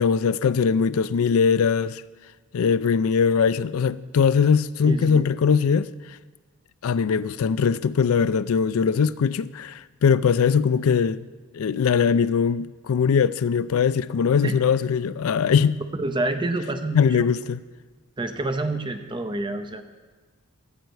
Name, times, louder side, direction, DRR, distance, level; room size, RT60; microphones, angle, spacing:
voice 1, 0.0-2.0 2.5-5.9 6.8-11.3 11.5-15.8 16.9-17.6, left 6 dB, 70° left, 0.4 m, -21 dB
voice 2, 4.8-5.3 14.4-14.6 15.9-17.2 18.2-19.8, right 2 dB, 20° right, 0.8 m, -27 dB
14.0 x 4.7 x 8.0 m
head